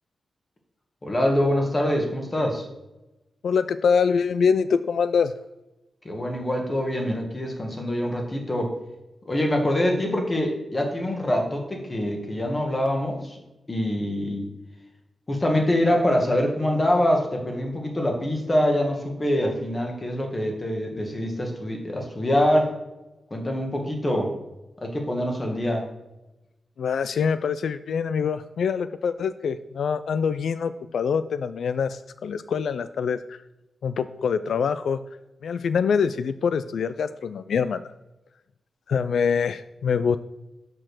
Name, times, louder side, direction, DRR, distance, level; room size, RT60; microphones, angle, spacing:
voice 1, 1.0-2.6 6.0-8.7 9.2-13.4 13.7-14.5 15.3-22.7 23.3-24.3 24.8-25.8, left 1 dB, 20° left, 2 dB, 1.5 m, -24 dB
voice 2, 3.4-5.3 26.8-33.4 33.8-35.0 35.4-37.8 38.9-40.2, left 6 dB, 85° left, 12 dB, 0.3 m, -24 dB
6.6 x 6.0 x 6.3 m, 0.97 s
wide cardioid pair, 170°, 0 cm